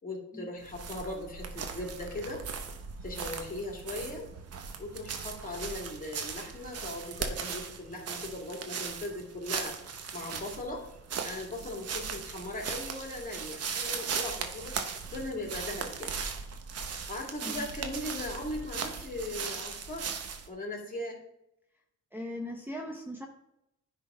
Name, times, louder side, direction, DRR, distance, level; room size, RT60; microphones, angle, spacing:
voice 1, 0.0-2.4 3.0-4.3 4.8-9.7 10.1-10.8 11.2-14.8 15.1-16.1 17.1-20.1 20.4-21.2, left 1 dB, 30° left, 0 dB, 2.2 m, -39 dB
sound 1, 0.6-20.5, right 6 dB, 55° right, 0.9 m, -38 dB
voice 2, 22.1-23.3, left 1 dB, 5° right, 1 dB, 0.8 m, -39 dB
9.9 x 3.6 x 4.2 m, 0.81 s
cardioid pair, 90°, 30 cm